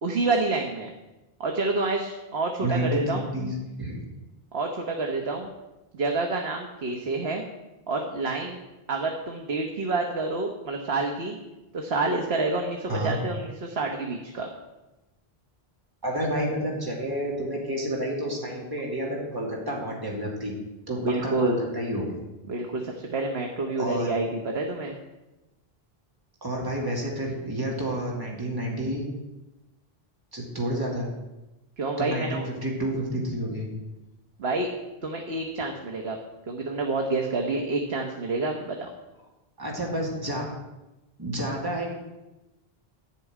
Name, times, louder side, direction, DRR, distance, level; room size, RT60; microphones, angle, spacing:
voice 1, 0.0-0.9 1.4-3.2 4.5-5.5 5.9-7.4 7.9-8.6 8.9-11.4 11.7-14.5 21.0-21.6 22.5-24.9 31.8-32.5 34.4-34.7 35.0-36.2 36.5-38.9, right 3 dB, 80° right, 1 dB, 1.5 m, -28 dB
voice 2, 2.6-4.0 12.9-13.2 16.0-20.5 20.9-22.1 23.8-24.2 26.4-29.1 30.3-31.1 32.0-33.7 39.6-40.5 41.2-41.9, right 1 dB, 20° right, -3 dB, 2.6 m, -30 dB
11.5 x 6.2 x 9.3 m, 1.0 s
omnidirectional pair, 1.0 m